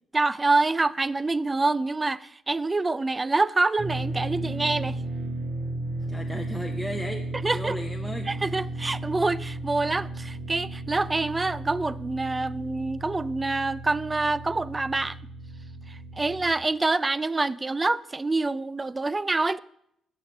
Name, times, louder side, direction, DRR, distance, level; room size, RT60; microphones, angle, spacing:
voice 1, 0.1-5.0 7.4-7.8 8.3-15.2 15.9-19.6, right 3 dB, 20° right, 0.3 m, -26 dB
sound 1, 3.8-16.5, right 2 dB, 60° right, 1.4 m, -34 dB
voice 2, 6.0-8.3, equal, 5° right, 0.8 m, -35 dB
7.3 x 6.6 x 6.6 m
cardioid pair, 90°, 0 cm